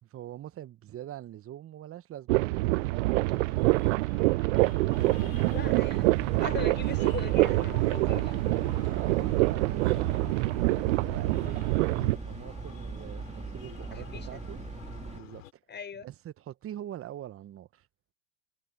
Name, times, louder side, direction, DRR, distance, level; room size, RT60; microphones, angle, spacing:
voice 1, 0.0-3.9 5.2-6.2 8.8-9.8 10.3-14.6 15.1-15.4 16.0-17.9, right 12 dB, 35° right, 1.1 m, -43 dB
sound 1, 2.3-12.2, right 23 dB, 70° right, 0.5 m, -26 dB
Breathing, 2.5-15.5, left 13 dB, 80° left, 3.1 m, -49 dB
sound 2, 5.0-15.2, right 4 dB, 15° right, 2.9 m, -41 dB
voice 2, 5.5-6.0 6.4-8.4 13.9-14.4 15.7-16.1, left 6 dB, 25° left, 5.7 m, -40 dB
hypercardioid pair, 85°, 39 cm